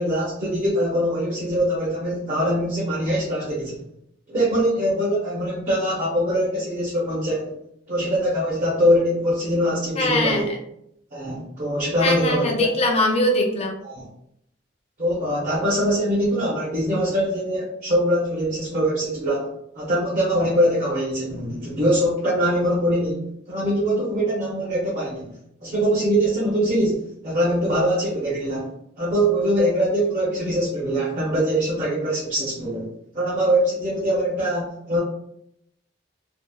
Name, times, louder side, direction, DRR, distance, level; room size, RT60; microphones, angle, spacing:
voice 1, 0.0-3.8 4.3-7.5 7.9-10.5 11.1-12.7 13.8-14.1 15.0-19.5 19.8-28.7 29.0-32.9 33.1-35.0, equal, 45° right, -6 dB, 0.6 m, -23 dB
voice 2, 10.0-10.6 12.0-13.8, left 1 dB, 35° left, 1 dB, 0.5 m, -21 dB
2.7 x 2.0 x 2.3 m, 0.77 s
head